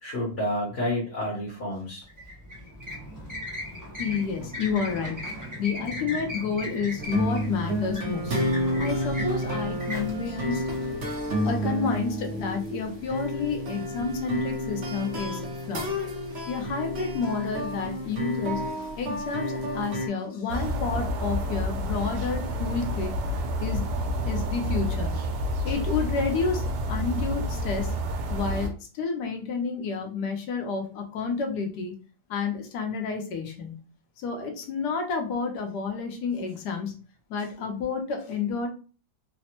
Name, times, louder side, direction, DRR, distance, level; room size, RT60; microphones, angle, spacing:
voice 1, 0.0-2.0, left 1 dB, 45° left, -4 dB, 1.0 m, -29 dB
sound 1, 2.0-11.3, left 1 dB, 30° right, 0.3 m, -38 dB
voice 2, 4.0-5.2 5.6-8.3 8.8-10.7 11.1-15.9 16.5-23.1 23.6-23.8 24.2-25.2 25.6-27.9 28.3-31.9 32.3-33.8 34.2-36.9 37.3-38.7, left 5 dB, 75° left, 3 dB, 1.2 m, -30 dB
sound 2, 7.0-20.1, equal, 60° right, 0.7 m, -30 dB
sound 3, 20.5-28.7, equal, 75° right, 1.2 m, -29 dB
3.3 x 2.0 x 2.9 m, 0.36 s
omnidirectional pair, 1.8 m